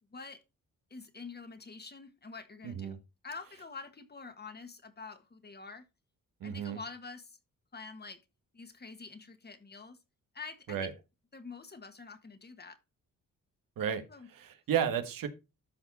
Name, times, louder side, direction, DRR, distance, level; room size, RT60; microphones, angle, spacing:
voice 1, 0.9-3.0 3.2-5.8 6.4-7.4 7.7-8.2 8.5-10.0 10.3-10.9 11.3-12.8 14.1-14.3, left 4 dB, 30° left, 1.7 m, -46 dB
voice 2, 2.6-3.0 6.4-6.8 10.7-10.9 13.8-14.0 14.3-15.3, right 8 dB, 80° right, 1.6 m, -32 dB
13.0 x 4.9 x 4.2 m
cardioid pair, 90°, 33 cm